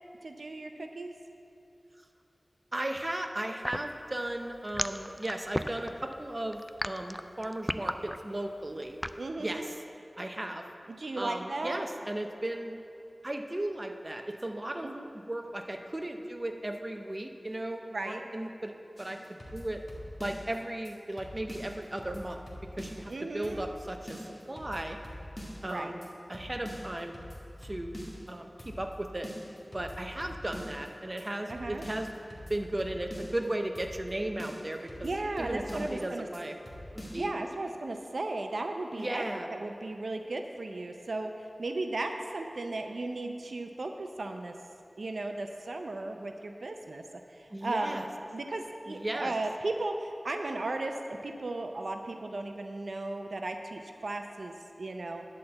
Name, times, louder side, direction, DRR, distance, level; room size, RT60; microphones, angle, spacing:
voice 1, 0.2-1.1 9.2-9.7 10.9-11.8 14.8-15.1 17.9-18.2 23.1-23.7 25.7-25.9 31.5-31.8 35.0-36.3 37.1-44.5 45.0-47.0 47.3-48.1 48.3-55.2, right 2 dB, 85° right, 5 dB, 0.5 m, -36 dB
voice 2, 2.7-9.0 9.4-9.7 10.2-10.7 11.2-12.7 13.2-18.7 19.0-19.8 20.2-22.4 22.8-25.0 25.6-27.2 27.6-27.9 28.3-29.3 29.7-32.1 32.5-35.1 35.4-36.6 37.1-37.3 39.0-39.5 47.5-48.0 48.9-49.3, right 1 dB, 30° right, 4 dB, 0.7 m, -36 dB
sound 1, 3.6-9.2, equal, ahead, 0.3 m, -34 dB
sound 2, 19.0-20.6 20.9-21.0 21.2-23.1 23.4-23.8 24.1-25.7 26.0-26.1 26.3-28.3 28.6-29.0 29.2-30.9 31.2-31.3 31.5-33.5 33.8-34.1 34.4-36.1 36.3-36.4 36.7-37.2, equal, 40° left, 1.6 m, -44 dB
10.5 x 4.2 x 7.7 m, 2.6 s
wide cardioid pair, 70°, 0 cm